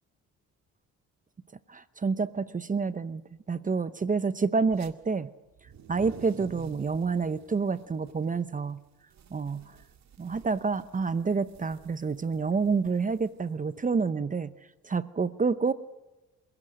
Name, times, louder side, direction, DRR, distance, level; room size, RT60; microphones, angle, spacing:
voice 1, 1.7-3.2 3.5-5.3 5.9-8.8 9.3-9.8 10.2-14.5 14.8-15.7, right 4 dB, 25° right, 14 dB, 0.8 m, -28 dB
sound 1, 4.7-4.9 5.5-14.0, right 7 dB, 65° right, 2.1 m, -51 dB
27.0 x 17.0 x 6.5 m, 1.0 s
cardioid pair, 90°, 30 cm